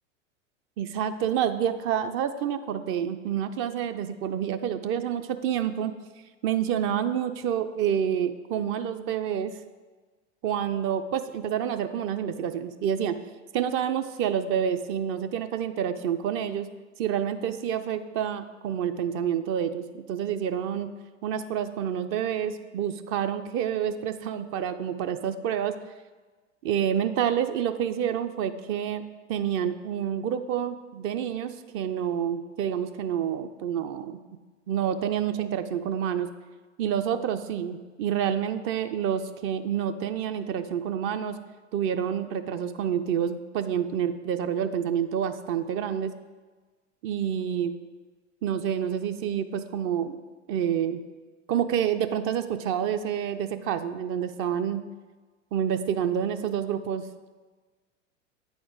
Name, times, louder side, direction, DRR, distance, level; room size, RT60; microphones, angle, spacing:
voice 1, 0.8-5.9 6.4-9.5 10.4-13.2 13.5-16.7 17.0-20.9 21.2-25.8 26.6-29.0 29.3-34.2 34.7-36.3 36.8-41.4 41.7-46.1 47.0-47.8 48.4-50.2 50.5-51.0 51.5-54.8 55.5-57.0, right 9 dB, 35° right, 9 dB, 0.5 m, -28 dB
8.7 x 4.3 x 4.6 m, 1.3 s
hypercardioid pair, 95°, 37 cm